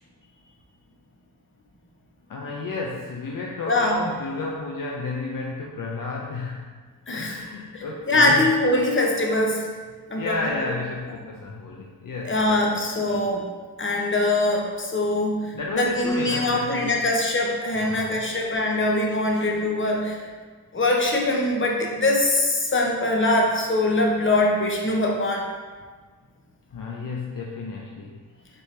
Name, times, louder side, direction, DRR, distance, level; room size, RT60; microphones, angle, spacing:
voice 1, 2.3-6.7 7.1-8.5 10.1-13.2 15.5-17.1 17.7-18.3 19.3-19.4 26.7-28.2, left 3 dB, 60° left, -1 dB, 0.6 m, -32 dB
voice 2, 3.7-4.0 7.1-7.4 7.7-9.6 10.1-10.3 10.6-10.7 12.2-13.5 13.8-20.2 20.7-25.4, left 2 dB, 30° left, 0 dB, 0.9 m, -22 dB
4.2 x 3.3 x 3.3 m, 1.5 s
cardioid pair, 45°, 38 cm